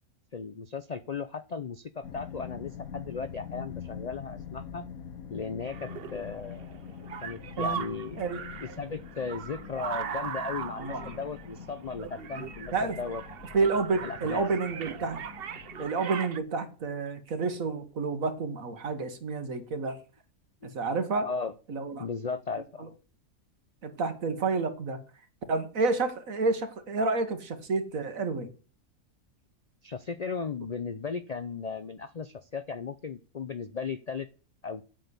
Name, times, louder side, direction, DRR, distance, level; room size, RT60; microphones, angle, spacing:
voice 1, 0.3-4.9 5.3-6.7 7.2-8.2 8.6-13.2 14.0-14.5 20.6-20.7 21.2-21.5 22.0-23.0 29.8-34.3 34.6-34.8, left 5 dB, 60° left, 0.4 m, -36 dB
sound 1, 2.0-15.9, left 7 dB, 85° left, 1.6 m, -44 dB
sound 2, 5.7-16.4, right 7 dB, 50° right, 0.8 m, -39 dB
voice 2, 10.8-11.2 12.7-13.1 13.5-15.2 15.8-20.0 20.6-21.3 21.7-22.1 22.8-22.9 23.8-25.0 25.5-28.5, right 4 dB, 70° right, 1.8 m, -30 dB
8.4 x 6.3 x 8.2 m
omnidirectional pair, 1.5 m